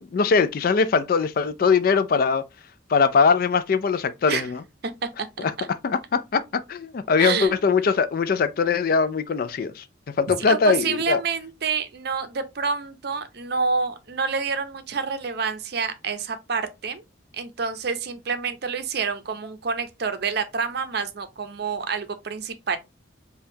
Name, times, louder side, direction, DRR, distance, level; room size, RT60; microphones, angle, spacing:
voice 1, 0.0-2.4 2.9-4.6 5.8-6.4 6.7-9.8 10.2-11.2, left 5 dB, 50° left, 0.3 m, -21 dB
voice 2, 7.2-7.6 10.5-17.0 17.3-22.8, right 5 dB, 55° right, 0.5 m, -28 dB
5.2 x 2.3 x 2.6 m
head